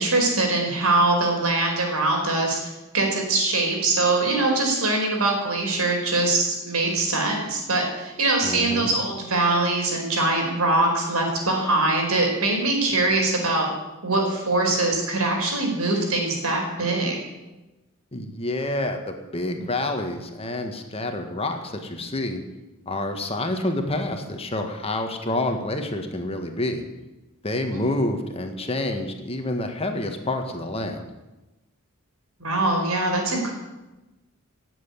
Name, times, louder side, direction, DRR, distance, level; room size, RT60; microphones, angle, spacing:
voice 1, 0.0-2.6 2.9-13.7 14.0-17.2 27.7-27.8 32.4-33.5, right 2 dB, 80° right, 1 dB, 4.8 m, -22 dB
voice 2, 8.4-8.9 18.1-22.4 22.9-26.8 27.4-31.0, left 1 dB, 25° left, 5 dB, 1.8 m, -28 dB
17.5 x 8.0 x 9.7 m, 1.1 s
head